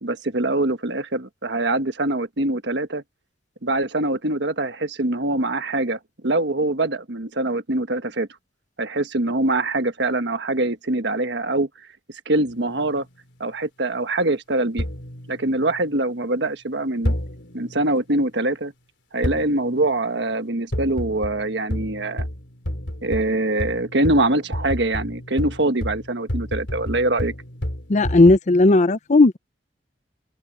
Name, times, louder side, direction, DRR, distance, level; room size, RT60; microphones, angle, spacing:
voice 1, 0.0-3.0 3.6-8.3 8.8-11.7 12.2-13.0 13.4-14.9 15.3-17.1 17.5-18.7 19.1-22.3 23.0-27.3, right 2 dB, 70° right, 1.4 m, -23 dB
sound 1, 12.5-13.1 14.8-16.1 17.0-17.9 19.2-20.1 20.7-28.4, equal, 80° left, 3.4 m, -31 dB
voice 2, 27.9-29.4, left 2 dB, 40° left, 0.6 m, -15 dB
head